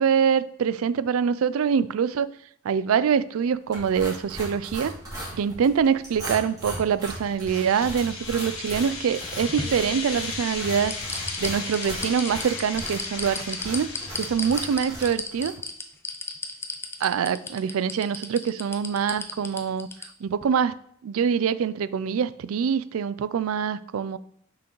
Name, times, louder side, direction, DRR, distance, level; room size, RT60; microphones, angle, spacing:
voice 1, 0.0-2.3 2.6-4.9 5.4-10.9 11.4-15.5 17.0-19.9 20.2-20.8 21.0-24.2, right 7 dB, 80° right, 16 dB, 0.4 m, -24 dB
sound 1, 3.7-15.6, right 1 dB, 20° right, 2.6 m, -38 dB
sound 2, 7.2-15.1, left 4 dB, 85° left, 1.6 m, -36 dB
sound 3, 9.0-10.3 10.8-20.1 20.4-20.5, left 3 dB, 10° left, 0.5 m, -34 dB
6.1 x 5.9 x 3.1 m, 0.65 s
head